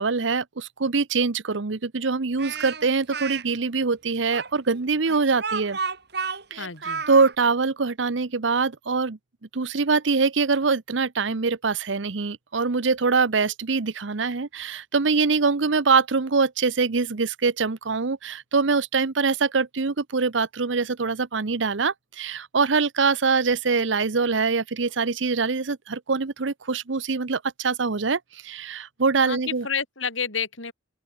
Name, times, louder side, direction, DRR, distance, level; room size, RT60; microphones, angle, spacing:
voice 1, 0.0-5.8 6.5-6.7 7.1-9.2 9.5-29.7, right 4 dB, 75° right, 0.9 m, -24 dB
Speech, 2.4-3.4 4.3-7.3, right 5 dB, 55° right, 6.0 m, -31 dB
voice 2, 6.6-7.0 29.2-30.7, left 6 dB, 90° left, 5.5 m, -30 dB
open air
head